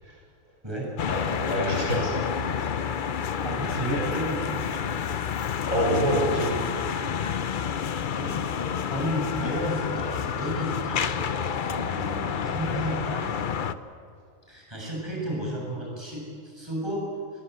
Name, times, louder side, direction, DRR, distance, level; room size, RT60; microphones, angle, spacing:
sound 1, 1.0-13.7, left 7 dB, 50° left, 0.7 m, -29 dB
voice 1, 1.1-2.9 5.6-6.6 10.5-10.6 11.6-11.9, equal, 80° right, -1 dB, 5.4 m, -28 dB
voice 2, 3.4-4.6 7.7-8.4 8.9-13.7 14.5-17.0, equal, 20° right, -2 dB, 7.2 m, -32 dB
22.5 x 22.0 x 8.1 m, 2.2 s
omnidirectional pair, 1.4 m